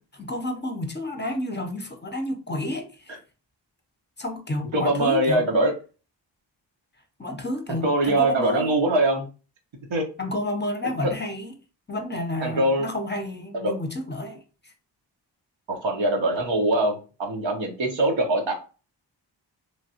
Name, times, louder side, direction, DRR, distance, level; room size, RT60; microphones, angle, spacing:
voice 1, 0.1-3.2 4.2-5.5 7.2-8.7 10.2-11.5 11.9-14.7, left 1 dB, 25° left, 0.6 m, -30 dB
voice 2, 4.7-5.7 7.7-9.2 9.9-10.1 12.4-12.9 13.5-13.7 15.7-18.5, right 1 dB, 80° right, 0.9 m, -22 dB
3.2 x 2.3 x 2.7 m
cardioid pair, 45°, 46 cm